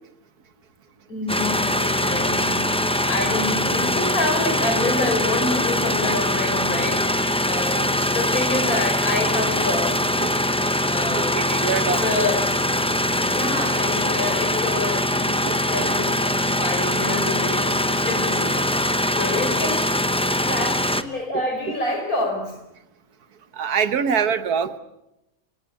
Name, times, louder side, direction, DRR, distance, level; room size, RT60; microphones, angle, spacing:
voice 1, 1.1-10.0 10.9-11.5 11.8-12.4 13.3-18.5 19.2-19.9 20.4-22.6, left 2 dB, 70° left, 5 dB, 5.8 m, -27 dB
sound 1, 1.3-21.0, left 1 dB, 5° left, 0.6 m, -22 dB
voice 2, 11.1-12.3 13.3-13.4 15.1-15.2 15.4-15.9 18.5-18.6 20.3-20.4 23.5-24.8, right 7 dB, 80° right, 11 dB, 1.7 m, -25 dB
29.0 x 17.0 x 8.4 m, 0.89 s
omnidirectional pair, 1.6 m